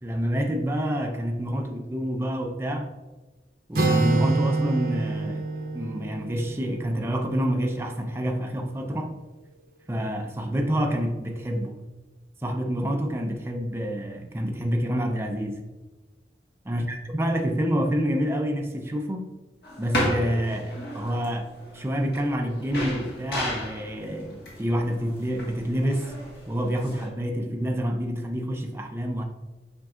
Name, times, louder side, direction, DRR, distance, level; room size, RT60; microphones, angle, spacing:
voice 1, 0.0-2.9 3.7-5.5 5.7-9.2 9.9-11.8 12.4-15.6 16.7-19.2 19.8-26.2 26.5-29.2, equal, 15° right, 0.4 m, -28 dB
Acoustic guitar, 3.7-7.5, right 3 dB, 55° right, 0.7 m, -26 dB
sound 1, 19.6-27.1, equal, 65° left, 1.6 m, -34 dB
7.6 x 5.2 x 2.4 m
head